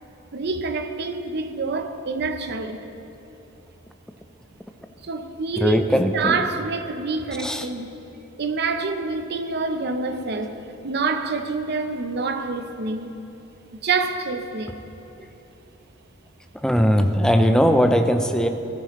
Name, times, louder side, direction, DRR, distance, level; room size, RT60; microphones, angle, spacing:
voice 1, 0.3-2.8 5.0-8.0 8.4-13.1 13.7-14.8, right 4 dB, 55° right, 0.7 m, -27 dB
voice 2, 5.6-6.4 7.4-7.6 16.6-18.5, equal, 5° left, 0.5 m, -19 dB
16.0 x 14.0 x 3.1 m
head